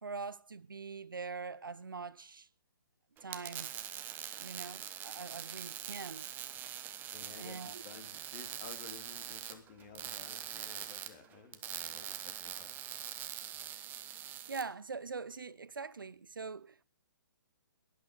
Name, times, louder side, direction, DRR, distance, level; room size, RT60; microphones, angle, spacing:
voice 1, 0.0-2.5 3.2-3.7 4.4-6.3 7.4-7.8 14.5-16.8, right 4 dB, 80° right, 0.8 m, -43 dB
sound 1, 3.2-14.6, right 11 dB, 15° right, 1.1 m, -43 dB
voice 2, 7.1-12.7, left 5 dB, 35° left, 3.9 m, -53 dB
18.5 x 11.5 x 5.0 m
figure-of-eight pair, 135°, 11 cm